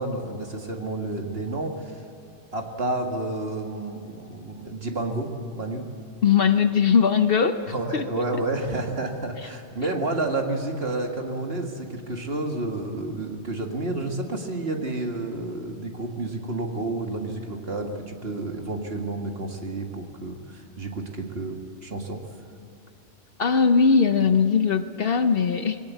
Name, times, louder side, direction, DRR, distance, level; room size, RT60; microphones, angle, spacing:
voice 1, 0.0-2.0 2.5-5.9 7.7-22.2, right 2 dB, 50° right, 3 dB, 2.1 m, -30 dB
voice 2, 6.2-7.6 7.9-8.2 23.4-25.8, left 6 dB, 55° left, 9 dB, 0.9 m, -20 dB
21.5 x 18.0 x 8.3 m, 2.7 s
omnidirectional pair, 1.3 m